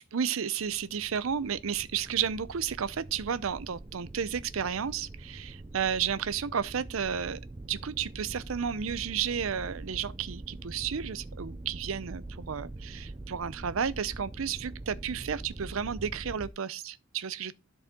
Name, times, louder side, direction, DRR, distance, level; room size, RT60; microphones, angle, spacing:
voice 1, 0.0-7.4 7.6-17.5, right 7 dB, 75° right, 0.6 m, -32 dB
sound 1, 0.6-16.5, right 2 dB, 20° right, 0.4 m, -44 dB
12.5 x 4.2 x 3.6 m
head